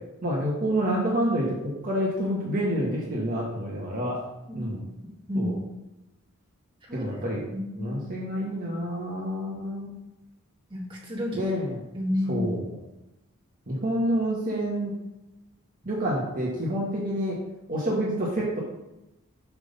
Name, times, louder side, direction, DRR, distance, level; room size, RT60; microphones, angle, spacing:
voice 1, 0.2-4.2 4.5-4.8 5.3-5.6 6.9-7.4 7.8-10.0 11.3-11.8 12.3-12.6 13.7-14.9 15.8-17.4 17.7-18.6, equal, 40° right, -4 dB, 1.5 m, -28 dB
voice 2, 4.5-4.9 5.3-5.5 6.8-7.1 7.5-8.0 10.7-11.5 11.9-12.5, left 1 dB, 25° right, -4 dB, 1.8 m, -31 dB
7.9 x 3.6 x 5.5 m, 0.96 s
head